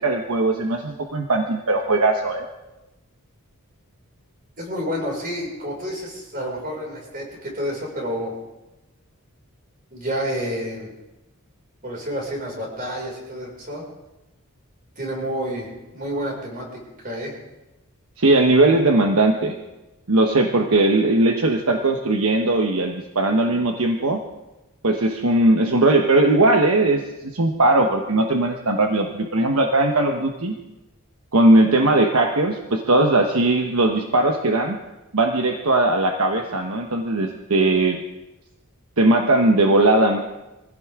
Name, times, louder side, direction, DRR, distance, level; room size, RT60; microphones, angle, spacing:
voice 1, 0.0-2.5 18.2-19.5 20.1-24.2 24.8-30.6 31.3-34.8 35.1-38.0 39.0-40.2, right 2 dB, 70° right, 3 dB, 1.2 m, -19 dB
voice 2, 4.6-8.3 9.9-10.9 11.8-13.8 15.0-16.6 17.0-17.3 18.9-19.1, equal, 40° right, -2 dB, 5.7 m, -29 dB
24.0 x 16.0 x 3.7 m, 1.0 s
head